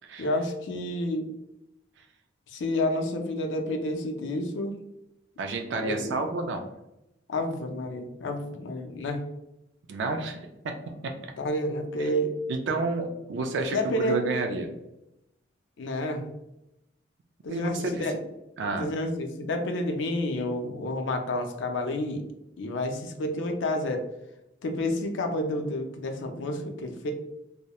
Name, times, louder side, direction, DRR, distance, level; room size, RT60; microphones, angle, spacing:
voice 1, 0.2-1.3 2.5-4.7 5.8-6.3 7.3-9.2 11.4-12.3 13.7-14.2 15.8-16.3 17.4-18.1 18.6-22.2 22.6-24.1 24.6-27.1, left 1 dB, 85° left, 5 dB, 0.4 m, -30 dB
voice 2, 5.4-6.7 9.9-10.7 11.0-11.1 12.0-12.1 12.5-14.7 17.5-18.0 18.6-18.9, right 3 dB, 70° right, 4 dB, 0.3 m, -30 dB
2.8 x 2.0 x 2.2 m, 0.88 s
head